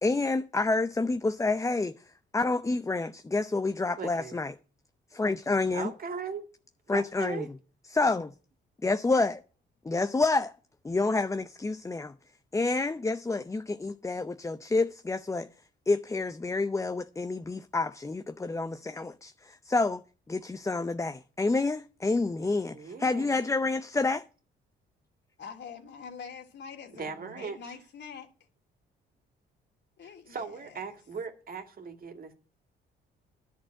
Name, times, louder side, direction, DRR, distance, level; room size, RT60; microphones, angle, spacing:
voice 1, 0.0-2.0 2.3-4.5 5.1-5.9 6.9-7.4 7.9-8.3 8.8-9.3 9.9-10.5 10.8-12.1 12.5-15.5 15.9-20.0 20.3-24.2, left 3 dB, 15° left, 0.6 m, -28 dB
voice 2, 4.0-4.4 5.7-6.5 6.9-7.5 22.7-23.3 26.9-27.7 30.0-32.3, right 5 dB, 45° right, 2.2 m, -39 dB
voice 3, 25.4-28.3 30.0-30.8, left 6 dB, 60° left, 2.8 m, -45 dB
10.5 x 6.4 x 9.0 m
cardioid pair, 90°, 20 cm